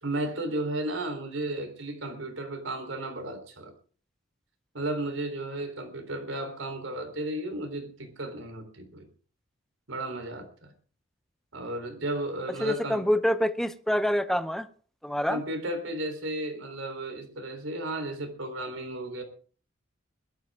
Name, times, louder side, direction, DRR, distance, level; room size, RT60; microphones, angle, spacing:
voice 1, 0.0-3.7 4.7-9.1 9.9-10.7 11.5-13.1 15.3-19.2, right 1 dB, 80° right, 3.8 m, -34 dB
voice 2, 12.6-14.7 15.0-15.4, equal, ahead, 0.6 m, -26 dB
21.5 x 12.0 x 3.6 m
head